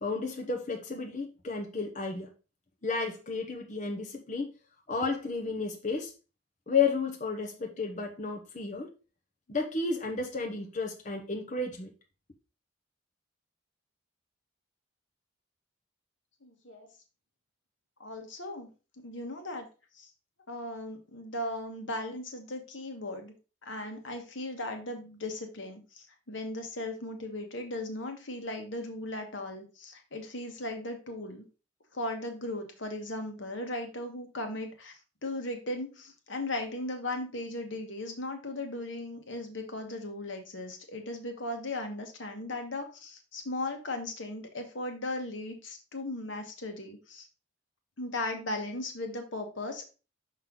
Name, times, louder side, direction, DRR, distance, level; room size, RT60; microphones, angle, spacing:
voice 1, 0.0-2.3 2.8-4.5 4.9-6.1 6.7-8.9 9.5-11.9, left 4 dB, 40° left, 1 dB, 0.9 m, -32 dB
voice 2, 16.4-16.9 18.0-18.7 19.0-19.7 19.9-20.1 20.5-23.3 23.6-31.4 31.9-47.3 48.0-49.9, left 2 dB, 75° left, 4 dB, 1.4 m, -37 dB
5.9 x 5.5 x 3.8 m, 0.32 s
head